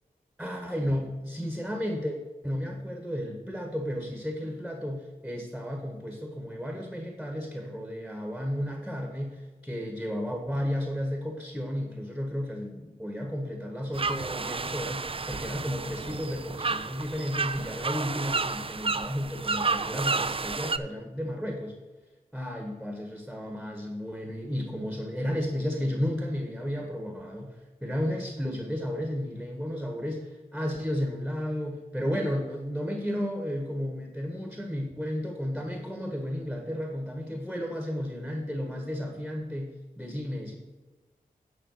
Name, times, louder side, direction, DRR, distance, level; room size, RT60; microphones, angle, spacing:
voice 1, 0.4-2.2 2.4-21.7 22.3-40.6, equal, ahead, 2 dB, 1.6 m, -33 dB
sound 1, 13.9-20.8, right 4 dB, 35° right, 0.5 m, -31 dB
10.0 x 5.1 x 6.6 m, 1.3 s
wide cardioid pair, 70°, 15 cm